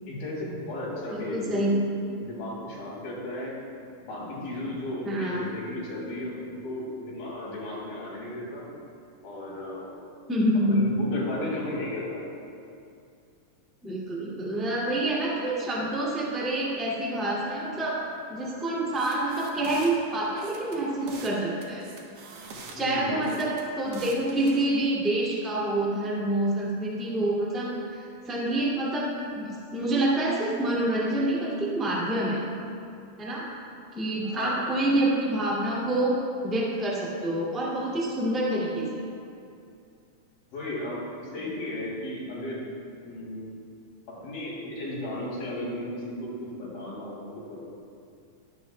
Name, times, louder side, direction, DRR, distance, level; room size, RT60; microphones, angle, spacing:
voice 1, 0.0-1.7 2.2-3.6 4.0-8.7 9.2-9.9 10.7-12.2 22.7-23.2 34.2-34.6 40.5-42.7 43.0-43.5 44.2-47.6, left 1 dB, 75° left, -6 dB, 4.6 m, -35 dB
voice 2, 1.3-1.8 5.0-5.5 10.3-10.9 13.8-18.0 18.3-21.8 22.7-28.0 28.2-32.4 33.2-33.4 33.9-39.0, right 1 dB, ahead, -6 dB, 1.1 m, -27 dB
sound 1, 18.9-19.9 20.4-21.3 21.6-22.8 23.2-24.6, right 3 dB, 65° right, 1.6 m, -44 dB
23.0 x 8.9 x 2.2 m, 2.5 s
omnidirectional pair, 4.2 m